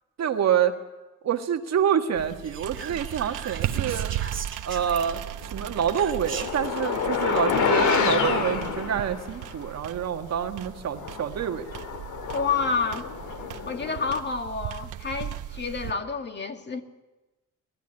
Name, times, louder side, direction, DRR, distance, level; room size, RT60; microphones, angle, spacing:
voice 1, 0.2-0.8 1.2-4.1 4.6-5.2 5.5-11.7, right 8 dB, 60° right, 6 dB, 1.6 m, -27 dB
sound 1, 2.1-15.9, right 12 dB, 80° right, 1.1 m, -36 dB
Whispering, 2.4-5.4 6.0-6.7, right 6 dB, 40° right, 2.3 m, -39 dB
sound 2, 5.6-9.5 10.3-10.4 10.9-14.2, left 6 dB, 80° left, 2.2 m, -28 dB
voice 2, 12.3-13.1 13.6-16.8, left 5 dB, 35° left, 5 dB, 2.1 m, -29 dB
19.5 x 13.5 x 9.8 m, 1.1 s
cardioid pair, 90°, 30 cm